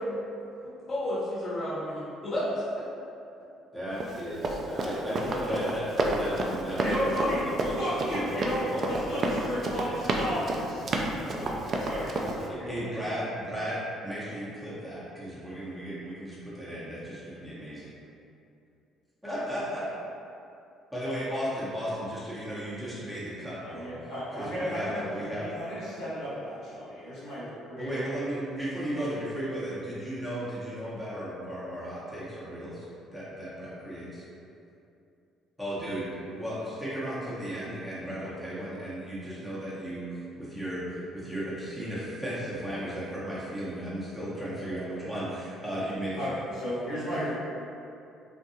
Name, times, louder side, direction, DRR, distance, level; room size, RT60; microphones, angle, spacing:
voice 1, 0.6-2.4 2.8-2.9, left 1 dB, 45° left, -9 dB, 1.1 m, -32 dB
voice 2, 3.7-7.8 8.1-8.9 12.4-17.9 19.2-19.9 20.9-23.9 24.3-25.5 27.8-34.2 35.6-40.1 40.3-46.4, equal, ahead, -10 dB, 0.9 m, -35 dB
Run, 4.0-12.5, right 2 dB, 50° right, 0.3 m, -30 dB
voice 3, 6.8-7.4 7.8-10.7 11.0-12.9 23.6-28.1 46.1-47.3, equal, 65° left, -11 dB, 1.3 m, -34 dB
2.6 x 2.2 x 2.7 m, 2.6 s
hypercardioid pair, 55°, 0 cm